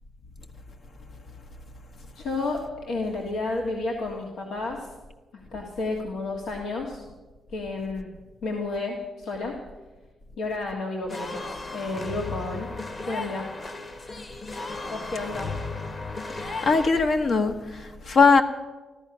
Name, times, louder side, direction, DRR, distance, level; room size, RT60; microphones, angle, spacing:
voice 1, 2.2-2.6 2.9-4.9 5.5-7.0 7.5-8.1 8.4-9.5 10.4-12.7 13.1-13.4 14.9-15.5, left 3 dB, 85° left, -1 dB, 1.7 m, -31 dB
sound 1, 11.1-16.9, left 3 dB, 40° left, 1.4 m, -35 dB
voice 2, 16.6-18.4, left 4 dB, 60° left, 5 dB, 1.1 m, -20 dB
14.0 x 13.5 x 6.1 m, 1.3 s
cardioid pair, 80°, 0 cm